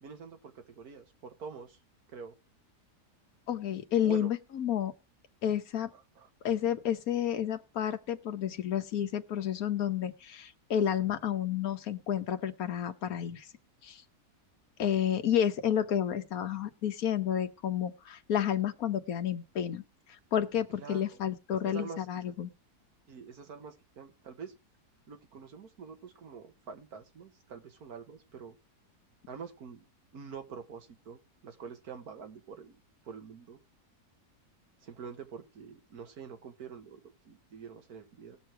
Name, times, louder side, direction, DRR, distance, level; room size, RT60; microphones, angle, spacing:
voice 1, 0.0-1.8 2.1-2.3 4.0-4.3 5.9-6.3 20.7-21.2 21.7-22.1 23.1-24.5 25.1-28.6 29.3-29.9 30.1-32.7 33.0-33.6 34.8-38.4, right 6 dB, 70° right, 6 dB, 1.9 m, -46 dB
voice 2, 3.5-4.9 5.4-5.9 6.4-13.5 13.8-14.0 14.8-19.8 20.3-22.5, left 9 dB, 70° left, 8 dB, 1.4 m, -30 dB
18.0 x 6.5 x 4.5 m, 0.30 s
omnidirectional pair, 1.7 m